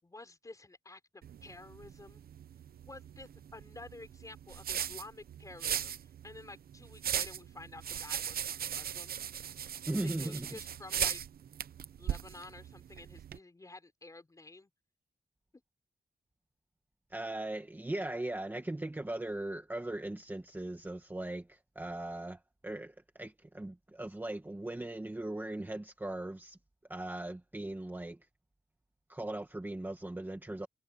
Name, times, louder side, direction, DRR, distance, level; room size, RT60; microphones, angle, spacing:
voice 1, 0.0-2.2 2.8-5.9 6.2-9.1 10.0-11.2 12.0-14.7, left 2 dB, 20° left, 4.9 m, -51 dB
sound 1, 1.2-13.4, right 9 dB, 70° right, 0.7 m, -39 dB
voice 2, 9.9-10.6 17.1-26.6 26.9-28.2 29.1-30.7, right 1 dB, 10° right, 1.6 m, -39 dB
wide cardioid pair, 150°, 16 cm